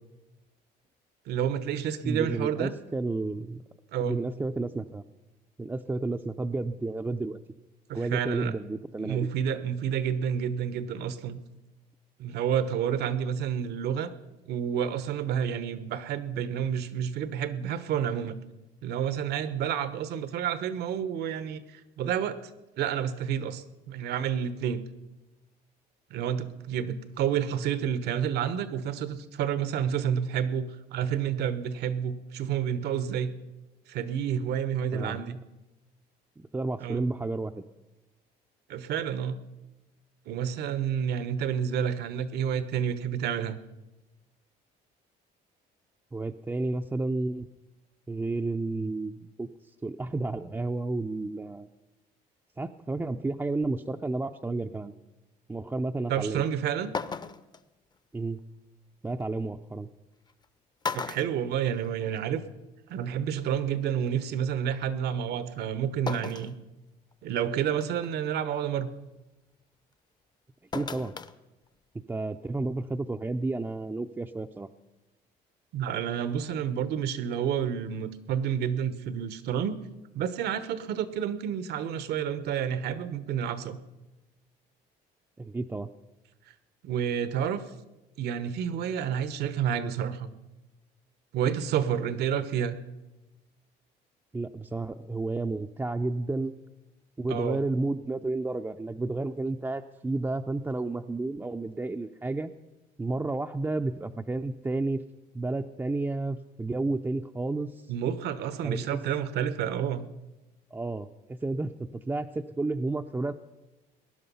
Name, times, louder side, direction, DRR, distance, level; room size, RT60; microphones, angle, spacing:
voice 1, 1.3-2.7 3.9-4.2 7.9-8.5 9.0-11.4 12.2-14.1 14.4-18.4 18.8-22.4 22.8-24.9 26.1-33.3 33.9-35.3 36.8-37.1 38.7-39.4 40.3-43.6 56.1-56.9 60.9-62.4 62.9-66.5 67.2-68.9 75.7-79.8 80.1-83.8 86.8-87.6 88.2-90.3 91.3-92.7 97.3-97.6 107.9-110.0, right 8 dB, 75° right, 13 dB, 1.1 m, -29 dB
voice 2, 2.0-3.6 4.0-5.0 5.6-7.4 7.9-9.3 34.9-35.4 36.5-37.6 46.1-47.5 48.1-49.5 49.8-51.7 52.6-54.9 55.5-56.5 58.1-58.4 59.0-59.9 70.7-71.1 72.1-74.7 85.4-85.9 94.3-96.5 97.2-102.5 103.0-105.0 105.3-107.9 108.6-109.0 110.7-113.3, right 2 dB, 15° right, 5 dB, 0.5 m, -31 dB
sound 1, 56.4-56.5 56.9-57.6 59.2-59.3 60.3-60.5 60.8-62.2 62.6-62.7 63.9-64.0 66.1-66.6 67.1-67.2 67.8-68.1 70.7-71.3 71.7-71.8, left 5 dB, 25° left, 0.7 m, -35 dB
19.5 x 11.0 x 5.5 m, 1.1 s
cardioid pair, 110°, 17 cm